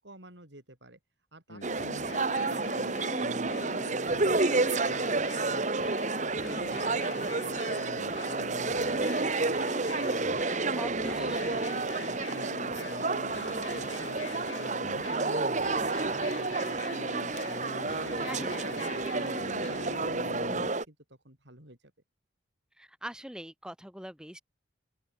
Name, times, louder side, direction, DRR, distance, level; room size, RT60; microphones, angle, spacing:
voice 1, 0.0-1.0 1.3-2.2 2.5-9.8 10.1-10.8 11.1-11.6 12.0-17.3 17.7-18.4 18.8-21.9, right 1 dB, 65° right, 6.3 m, -53 dB
sound 1, 1.5-20.7, left 3 dB, 80° left, 2.7 m, -42 dB
sound 2, 1.6-20.8, right 3 dB, 40° right, 1.2 m, -30 dB
voice 2, 10.7-11.8 18.2-19.0 22.8-24.4, equal, 5° right, 1.8 m, -43 dB
open air
head